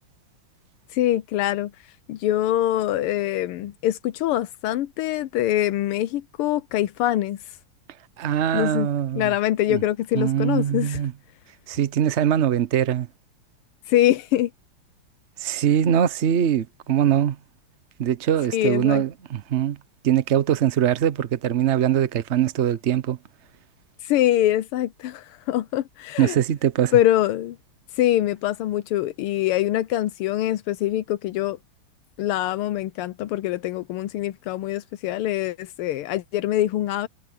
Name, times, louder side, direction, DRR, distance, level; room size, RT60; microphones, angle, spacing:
voice 1, 0.9-1.7 2.1-7.4 8.5-8.9 9.1-11.0 13.9-14.5 18.5-19.0 24.0-26.4 26.9-27.6 27.9-31.6 32.2-37.1, left 13 dB, 85° left, 1.6 m, -24 dB
voice 2, 8.2-9.3 9.7-9.8 10.1-11.1 11.7-13.1 15.4-17.4 18.0-19.8 20.0-23.2 26.2-27.0, right 10 dB, 85° right, 0.6 m, -22 dB
omnidirectional pair, 2.4 m